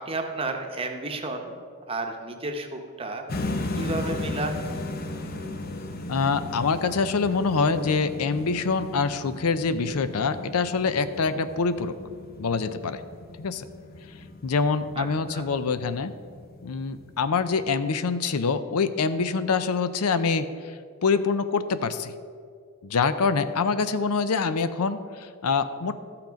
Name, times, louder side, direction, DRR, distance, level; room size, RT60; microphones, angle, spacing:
voice 1, 0.0-1.5 1.9-3.2 3.8-4.6 14.9-15.5, right 2 dB, 25° right, 4 dB, 0.8 m, -32 dB
sound 1, 3.3-17.3, left 2 dB, 40° left, 0.7 m, -36 dB
voice 2, 6.1-11.9 12.4-13.0 13.4-13.7 14.4-16.1 16.6-22.1 22.8-25.9, left 4 dB, 85° left, 12 dB, 0.5 m, -25 dB
13.5 x 5.8 x 5.1 m, 2.2 s
head